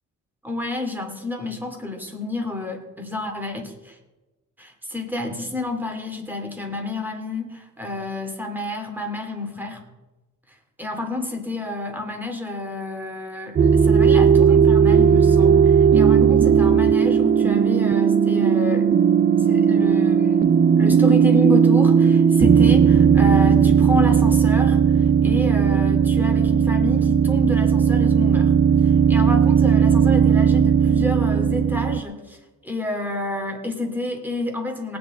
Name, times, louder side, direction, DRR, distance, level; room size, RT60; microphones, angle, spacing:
voice 1, 0.4-4.0 4.6-9.8 10.8-18.9 19.4-28.5 28.8-32.4 32.6-35.0, left 2 dB, 5° right, 2 dB, 2.5 m, -29 dB
sound 1, 13.6-32.0, right 7 dB, 35° right, 0.4 m, -16 dB
18.5 x 8.8 x 4.2 m, 1.1 s
cardioid pair, 115°, 31 cm